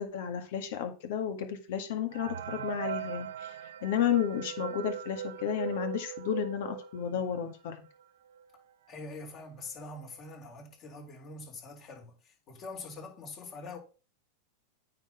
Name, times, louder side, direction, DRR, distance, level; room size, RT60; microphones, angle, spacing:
voice 1, 0.0-3.5 3.8-7.8, left 9 dB, 70° left, 1.9 m, -32 dB
sound 1, 2.1-7.6 8.0-8.1 8.3-8.5 9.2-9.3 9.7-10.0, right 10 dB, 80° right, 0.6 m, -40 dB
voice 2, 8.9-13.8, left 3 dB, 40° left, 3.9 m, -44 dB
8.9 x 4.1 x 5.9 m
hypercardioid pair, 105°, 0 cm